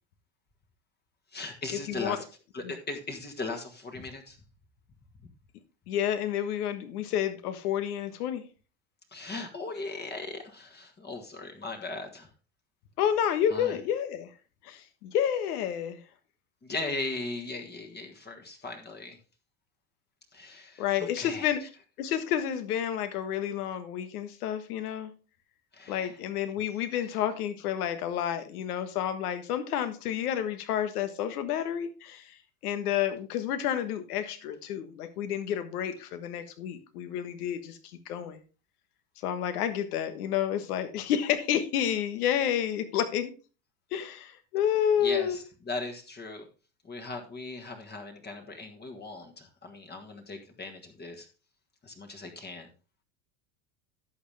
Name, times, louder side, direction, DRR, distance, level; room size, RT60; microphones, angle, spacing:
voice 1, 1.3-2.3 2.5-4.4 9.1-12.3 13.5-13.8 16.6-19.2 20.3-21.5 25.7-26.2 26.9-27.1 45.0-46.5 46.8-51.3 51.8-52.7, left 3 dB, 20° left, 4 dB, 1.4 m, -38 dB
voice 2, 5.9-8.4 13.0-14.3 14.6-16.0 20.8-21.6 22.0-25.1 25.9-32.3 32.6-37.8 38.1-38.4 39.2-43.3 43.9-45.4, left 9 dB, 85° left, 10 dB, 1.5 m, -30 dB
11.0 x 6.9 x 3.4 m, 0.33 s
supercardioid pair, 115°, 44 cm